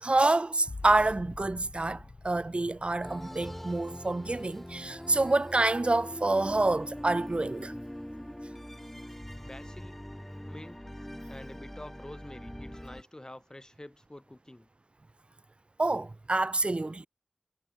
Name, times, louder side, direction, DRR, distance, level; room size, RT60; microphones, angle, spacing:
voice 1, 0.0-7.7 15.8-17.1, right 2 dB, 45° right, 0.5 m, -27 dB
sound 1, 0.6-6.1 6.6-7.2, left 3 dB, 70° left, 6.6 m, -48 dB
sound 2, 3.0-13.0, equal, 10° left, 0.5 m, -42 dB
voice 2, 9.4-10.0 10.5-10.8 11.3-14.7, left 1 dB, 25° left, 3.4 m, -47 dB
wide cardioid pair, 60°, 3 cm